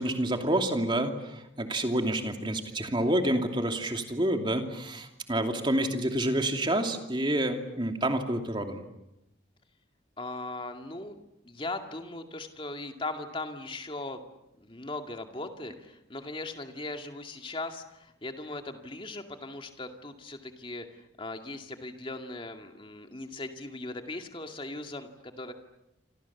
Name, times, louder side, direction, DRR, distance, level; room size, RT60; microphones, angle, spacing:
voice 1, 0.0-8.8, right 1 dB, 25° right, 5 dB, 2.7 m, -28 dB
voice 2, 10.2-14.2 14.6-25.5, left 2 dB, 25° left, 5 dB, 2.3 m, -39 dB
28.5 x 27.0 x 7.2 m, 0.90 s
head